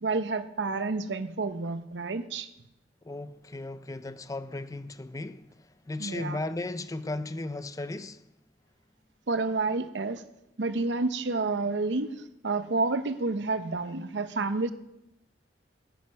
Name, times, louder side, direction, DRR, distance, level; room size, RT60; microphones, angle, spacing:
voice 1, 0.0-2.5 6.0-6.4 9.3-10.2 10.6-12.1 12.4-14.7, right 3 dB, 75° right, 0.7 m, -29 dB
voice 2, 3.0-8.2, left 2 dB, 20° left, 0.4 m, -36 dB
9.1 x 9.1 x 5.8 m
head